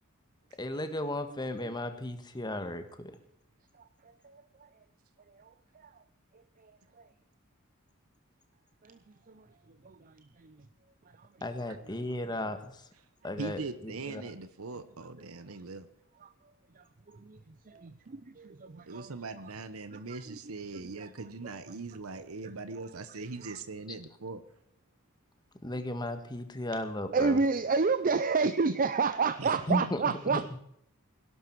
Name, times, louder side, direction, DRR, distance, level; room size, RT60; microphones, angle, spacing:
voice 1, 0.6-3.1 11.4-12.8 13.2-14.2 25.6-27.4 29.7-30.0 30.3-30.6, left 1 dB, 20° left, 8 dB, 1.6 m, -35 dB
voice 2, 3.7-4.8 5.3-6.0 6.3-7.1 8.8-10.7 11.1-11.3 16.2-16.3 16.7-17.5 18.4-19.1 19.9-20.4 20.8-21.1 21.4-21.8 22.4-22.9 23.4-23.6 27.1-30.6, right 4 dB, 40° right, 12 dB, 0.6 m, -32 dB
voice 3, 13.4-15.9 18.9-24.4 29.4-29.5, right 3 dB, 80° right, 12 dB, 1.0 m, -41 dB
17.0 x 12.0 x 4.7 m, 0.71 s
head